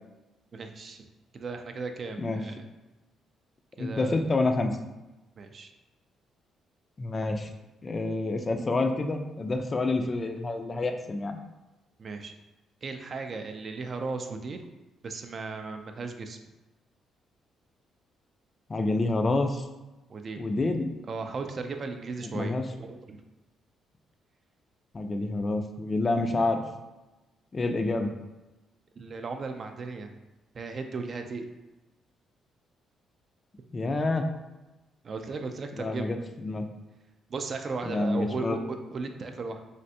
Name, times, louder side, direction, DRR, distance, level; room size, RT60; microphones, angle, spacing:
voice 1, 0.5-1.1 1.3-2.6 3.8-4.2 5.4-5.7 12.0-12.3 12.8-14.7 15.0-16.4 20.1-20.4 21.1-23.2 29.0-30.2 30.5-31.5 35.0-36.2 37.3-39.6, right 4 dB, 45° right, 6 dB, 0.3 m, -36 dB
voice 2, 3.8-4.8 7.0-7.5 7.8-11.4 18.7-19.7 20.4-20.9 22.3-22.6 24.9-26.6 27.5-28.1 33.7-34.3 35.8-36.7 37.9-38.6, left 2 dB, 30° left, 5 dB, 0.4 m, -28 dB
3.2 x 2.5 x 2.7 m, 1.0 s
cardioid pair, 90°, 0 cm